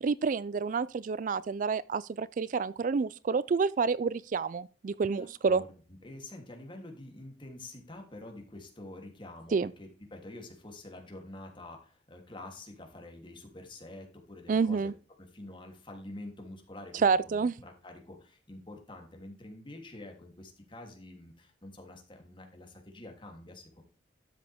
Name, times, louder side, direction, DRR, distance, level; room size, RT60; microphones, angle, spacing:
voice 1, 0.0-5.6 9.5-9.7 14.5-14.9 16.9-17.5, right 5 dB, 45° right, 0.3 m, -28 dB
voice 2, 5.1-14.9 15.2-23.8, left 1 dB, 30° left, 3.0 m, -47 dB
12.5 x 7.4 x 3.5 m
head